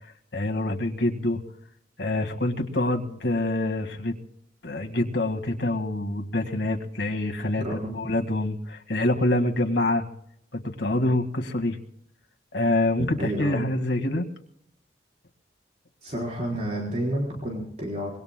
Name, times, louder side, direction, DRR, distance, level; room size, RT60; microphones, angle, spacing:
voice 1, 0.3-1.4 2.0-4.2 4.6-10.0 10.5-11.8 12.5-14.3, left 1 dB, 80° left, 4 dB, 1.8 m, -26 dB
voice 2, 7.6-8.0 13.0-13.7 16.0-18.2, equal, 35° right, -2 dB, 4.1 m, -30 dB
25.5 x 22.5 x 2.2 m, 0.71 s
head